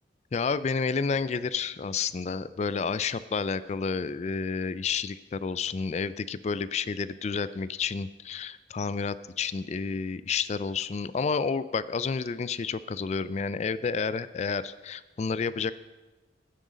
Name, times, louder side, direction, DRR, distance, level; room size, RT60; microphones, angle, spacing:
voice 1, 0.3-15.7, left 5 dB, 40° left, 16 dB, 0.3 m, -30 dB
11.0 x 10.0 x 5.1 m, 1.1 s
head